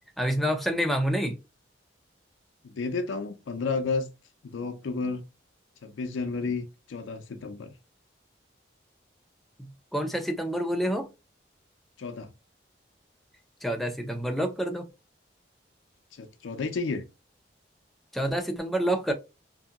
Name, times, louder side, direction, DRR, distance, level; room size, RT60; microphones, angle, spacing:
voice 1, 0.2-1.4 9.6-11.1 13.6-14.9 18.1-19.1, equal, ahead, 0.4 m, -28 dB
voice 2, 2.6-4.1 4.4-5.2 5.8-7.7 12.0-12.3 16.1-17.0, left 4 dB, 85° left, 0.4 m, -32 dB
2.7 x 2.6 x 2.3 m
head